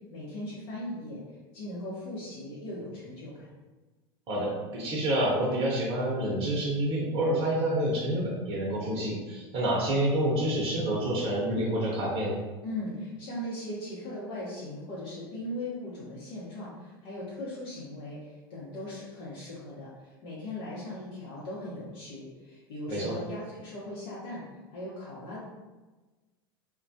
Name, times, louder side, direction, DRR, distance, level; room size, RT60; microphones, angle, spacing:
voice 1, 0.1-1.2 1.5-3.5 12.6-24.4 24.7-25.4, left 1 dB, 65° left, -9 dB, 0.8 m, -39 dB
voice 2, 4.3-12.4 22.9-23.1, right 1 dB, 45° right, -4 dB, 0.7 m, -28 dB
2.2 x 2.2 x 2.7 m, 1.2 s
hypercardioid pair, 95°, 13 cm